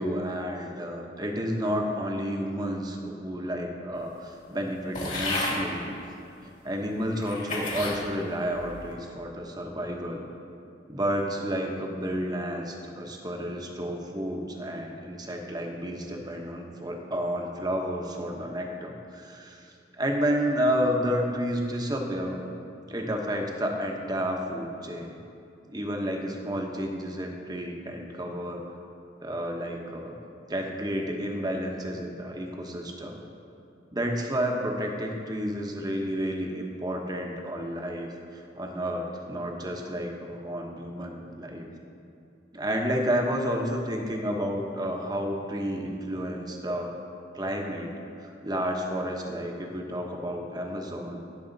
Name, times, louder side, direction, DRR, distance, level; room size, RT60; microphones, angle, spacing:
voice 1, 0.0-5.9 6.6-10.2 10.9-22.4 22.9-25.2 25.7-28.6 29.2-30.2 30.5-33.2 33.9-41.7 42.5-46.9 47.3-47.9 48.2-51.2, equal, 20° right, 1 dB, 1.1 m, -31 dB
sound 1, 4.9-5.6 6.4-6.5 7.2-8.0 8.5-8.9, left 2 dB, 40° left, 2.5 m, -31 dB
18.0 x 7.2 x 4.0 m, 2.7 s
head